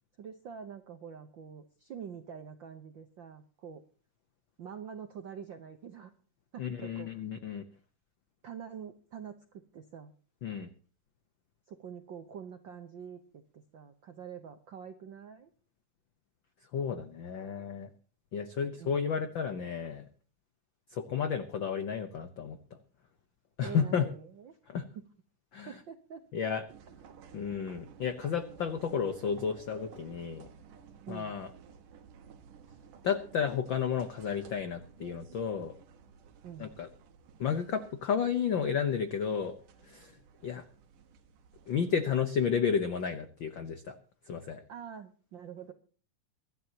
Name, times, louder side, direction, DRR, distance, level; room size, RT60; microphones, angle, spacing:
voice 1, 0.2-3.8 4.6-6.1 6.5-7.1 8.4-10.1 11.7-15.5 18.8-19.1 23.6-24.6 24.9-25.0 25.7-26.3 31.1-31.3 36.4-36.7 44.7-45.7, right 7 dB, 75° right, 7 dB, 1.1 m, -45 dB
voice 2, 6.6-7.6 10.4-10.7 16.7-17.9 18.3-20.1 20.9-22.6 23.6-24.1 24.7-24.9 25.5-25.8 26.3-26.6 27.3-30.5 31.1-31.5 33.0-35.7 36.6-36.9 37.4-39.5 39.8-40.2 40.4-40.6 41.7-43.9 44.2-44.6, left 7 dB, 85° left, 9 dB, 1.0 m, -32 dB
sound 1, 26.7-41.9, right 7 dB, 90° right, 3.0 m, -55 dB
23.0 x 12.5 x 2.9 m, 0.40 s
omnidirectional pair, 3.6 m